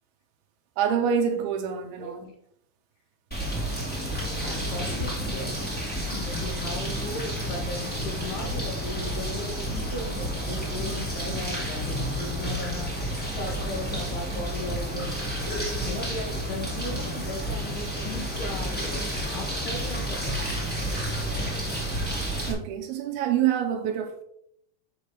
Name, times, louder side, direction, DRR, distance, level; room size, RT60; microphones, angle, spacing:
voice 1, 0.8-2.3 22.5-24.2, right 8 dB, 80° right, 2.4 m, -26 dB
voice 2, 2.0-2.4 4.4-20.7, left 3 dB, 75° left, 3.4 m, -37 dB
sound 1, 3.3-22.5, right 1 dB, 5° left, 1.0 m, -30 dB
8.0 x 3.2 x 6.2 m
omnidirectional pair, 4.8 m